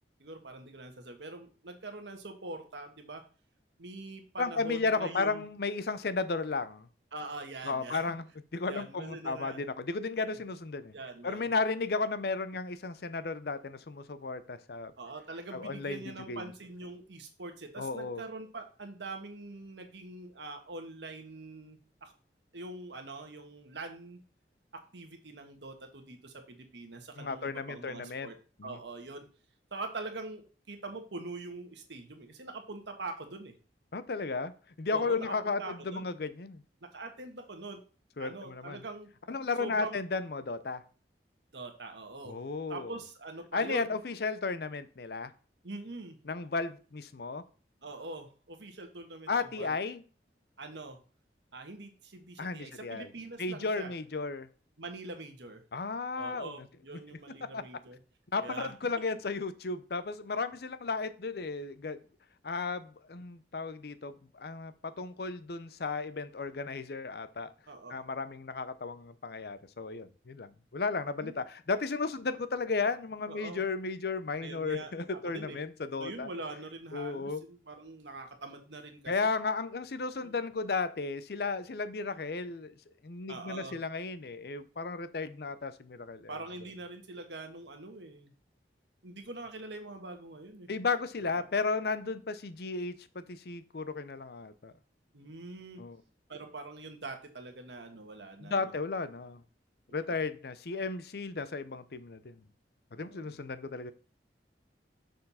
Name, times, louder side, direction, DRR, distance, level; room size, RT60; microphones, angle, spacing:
voice 1, 0.2-3.2 3.8-5.4 7.1-8.0 8.7-9.6 10.2-10.3 10.9-11.4 15.0-22.1 22.5-24.2 24.9-28.3 28.6-29.3 29.7-33.5 34.9-36.1 36.8-37.8 38.2-39.1 39.6-40.0 41.5-42.4 42.7-44.0 45.6-46.2 47.8-49.7 50.6-51.0 51.5-53.9 54.8-55.6 56.2-58.0 58.4-58.7 67.7-68.0 71.2-71.4 73.3-73.6 74.4-75.6 76.0-79.3 80.2-80.4 83.3-83.8 86.3-88.3 89.0-90.7 91.3-91.5 95.1-95.8 96.3-98.7 99.9-100.2 102.9-103.4, right 2 dB, 85° right, 1.5 m, -44 dB
voice 2, 4.4-6.9 7.6-8.2 8.5-10.9 11.2-14.9 15.5-16.0 16.3-16.5 17.8-18.2 27.2-28.3 28.6-28.8 33.9-36.6 38.2-38.8 39.3-40.8 42.2-43.0 43.5-45.3 46.3-47.4 49.3-50.0 52.4-53.1 53.4-54.5 55.7-56.5 57.4-57.6 58.3-62.0 62.4-67.5 67.9-76.3 76.9-77.4 79.1-82.8 83.0-86.3 90.7-94.7 95.8-96.0 98.4-99.4 99.9-102.4 102.9-103.9, left 4 dB, 60° left, 0.6 m, -34 dB
6.5 x 4.5 x 5.6 m
head